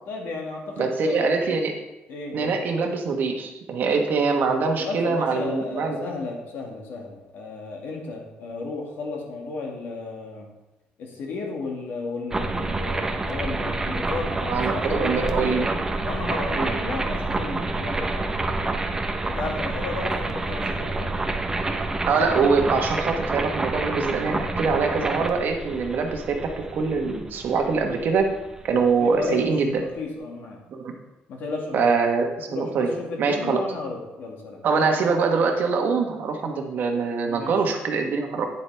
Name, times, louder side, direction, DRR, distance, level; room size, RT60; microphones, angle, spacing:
voice 1, 0.1-1.3 2.1-2.5 4.8-10.5 11.0-15.6 16.0-18.8 19.2-21.2 29.0-29.5 29.8-30.6 31.3-32.0 32.5-34.6 37.3-37.6, left 3 dB, 65° left, 0 dB, 2.0 m, -33 dB
voice 2, 0.8-1.7 2.3-6.1 14.5-15.8 16.5-16.7 22.1-28.3 28.6-29.8 30.7-30.9 31.7-32.9 33.2-33.7 34.6-38.5, right 4 dB, 55° right, 3 dB, 1.2 m, -24 dB
sound 1, 12.3-29.2, right 2 dB, 15° right, 0.7 m, -28 dB
9.2 x 7.6 x 3.4 m, 0.99 s
cardioid pair, 125°, 4 cm